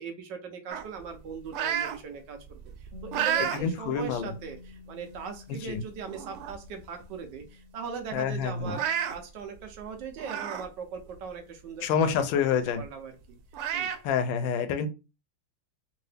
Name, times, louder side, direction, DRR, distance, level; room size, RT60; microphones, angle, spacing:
voice 1, 0.0-13.4 13.7-13.9, right 6 dB, 70° right, 5 dB, 1.2 m, -40 dB
sound 1, 0.7-2.0 2.4-3.6 4.1-4.3 5.1-5.2 5.7-5.8 6.1-6.7 7.0-7.1 7.4-7.5 8.6-9.1 10.2-10.7 11.1-11.2 12.8-12.9 13.5-14.0, right 9 dB, 90° right, 1.5 m, -31 dB
Bass guitar, 2.9-9.2, left 5 dB, 35° right, 0.9 m, -50 dB
voice 2, 3.5-4.3 5.5-5.8 8.1-8.8 11.8-12.8 14.0-14.9, left 7 dB, 75° left, 9 dB, 1.2 m, -27 dB
3.7 x 2.6 x 3.3 m, 0.29 s
omnidirectional pair, 2.3 m